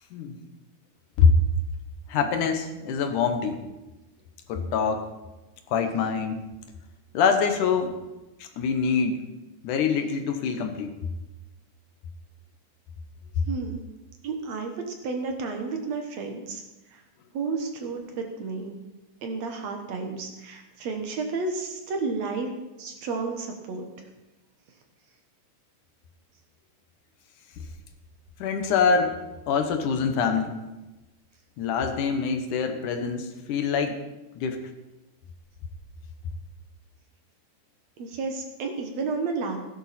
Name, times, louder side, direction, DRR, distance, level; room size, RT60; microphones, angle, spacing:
voice 1, 2.1-3.6 4.5-5.1 5.7-6.4 7.1-7.9 8.4-9.2 9.6-10.9 28.4-29.2 29.5-30.5 31.6-34.0 34.4-34.6, left 5 dB, 75° left, 6 dB, 2.5 m, -24 dB
voice 2, 13.5-13.8 14.2-16.6 16.9-17.0 17.3-18.8 19.2-22.5 22.8-23.9 38.0-39.6, right 4 dB, 60° right, 4 dB, 2.3 m, -31 dB
16.0 x 11.0 x 4.2 m, 1.1 s
omnidirectional pair, 3.8 m